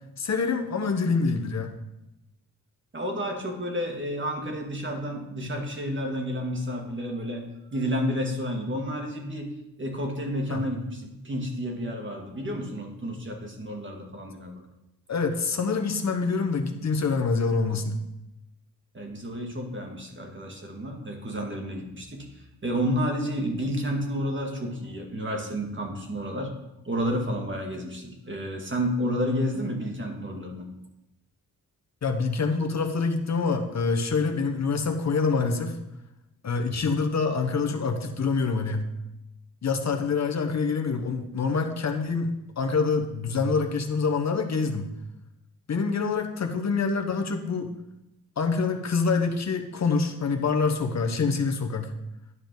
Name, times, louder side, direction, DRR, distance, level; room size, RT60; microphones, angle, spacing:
voice 1, 0.2-1.7 10.5-10.6 15.1-18.0 32.0-35.8 36.4-38.9 39.6-44.9 45.7-47.7 48.4-51.9, left 4 dB, 50° left, 5 dB, 1.0 m, -26 dB
voice 2, 2.9-7.4 7.7-14.6 18.9-26.6 26.9-30.7, equal, 35° right, 2 dB, 2.0 m, -31 dB
11.0 x 5.0 x 3.9 m, 0.91 s
cardioid pair, 70°, 35 cm